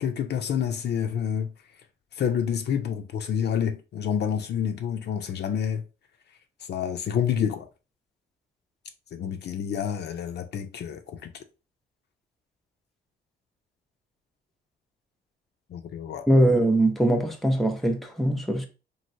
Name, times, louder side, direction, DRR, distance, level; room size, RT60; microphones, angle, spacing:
voice 1, 0.0-1.5 2.2-5.8 6.7-7.7 9.1-11.3 15.7-16.3, left 8 dB, 60° left, 0.5 m, -28 dB
voice 2, 16.3-18.7, right 1 dB, ahead, 0.6 m, -22 dB
3.1 x 2.7 x 2.6 m
cardioid pair, 90°, 20 cm